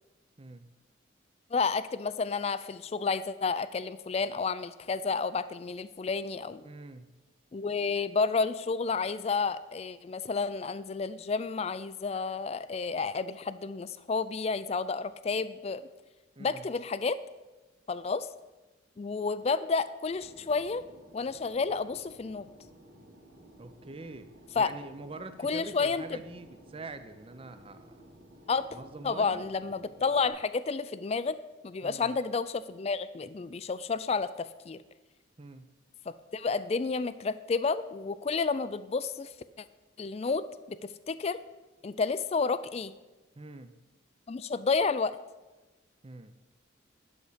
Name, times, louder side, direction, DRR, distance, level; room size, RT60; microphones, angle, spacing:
voice 1, 0.4-0.7 6.6-7.1 16.4-16.7 23.6-28.0 28.7-29.4 31.8-32.2 35.4-35.7 43.4-43.8 46.0-46.4, right 2 dB, 25° right, 10 dB, 0.5 m, -45 dB
voice 2, 1.5-6.6 7.5-15.8 16.4-17.2 17.9-18.3 19.0-20.8 21.1-22.5 24.6-24.7 25.4-26.0 28.5-28.8 29.0-31.4 31.6-34.8 36.1-39.6 40.0-41.4 41.8-42.9 44.3-45.2, left 4 dB, 30° left, 14 dB, 0.3 m, -31 dB
Fixed-wing aircraft airplane, 20.1-30.3, equal, 90° right, 2.4 m, -55 dB
10.5 x 6.7 x 5.0 m, 1.2 s
head